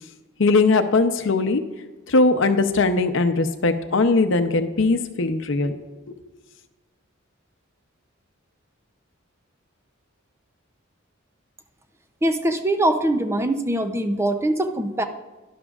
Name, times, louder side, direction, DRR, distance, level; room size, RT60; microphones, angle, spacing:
voice 1, 0.4-1.6 2.1-5.8 6.1-6.2, left 3 dB, 65° left, 8 dB, 0.7 m, -20 dB
voice 2, 12.2-15.0, right 1 dB, 15° right, 7 dB, 0.5 m, -22 dB
12.0 x 11.0 x 2.4 m, 1.2 s
head